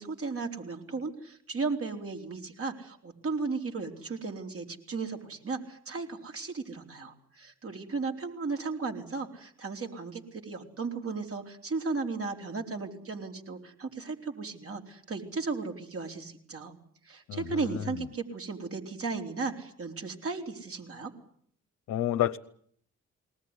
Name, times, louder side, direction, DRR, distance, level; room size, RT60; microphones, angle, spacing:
voice 1, 0.0-16.7 17.0-21.1, right 4 dB, 50° right, 4 dB, 4.3 m, -35 dB
voice 2, 17.3-18.0 21.9-22.4, left 12 dB, 75° left, 7 dB, 0.9 m, -30 dB
21.0 x 19.0 x 9.9 m, 0.62 s
supercardioid pair, 55°, 30 cm